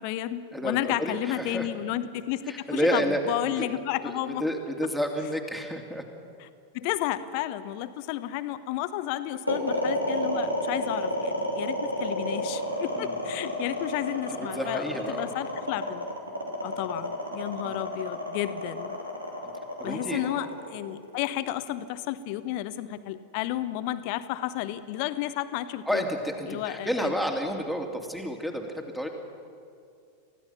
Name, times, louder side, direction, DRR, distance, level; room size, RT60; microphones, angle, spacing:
voice 1, 0.0-4.4 6.4-6.5 6.7-16.1 16.6-19.0 19.8-26.0 26.5-27.1, left 13 dB, 45° left, 12 dB, 1.0 m, -32 dB
voice 2, 0.5-1.7 2.5-3.2 3.6-3.7 4.0-4.1 4.4-6.0 12.9-13.1 14.3-15.3 16.6-16.7 17.6-17.8 19.8-20.2 25.9-29.1, equal, ahead, 3 dB, 2.6 m, -30 dB
sound 1, 9.5-21.7, equal, 85° right, 3.2 m, -31 dB
30.0 x 15.5 x 5.8 m, 2.4 s
figure-of-eight pair, 90°, 0 cm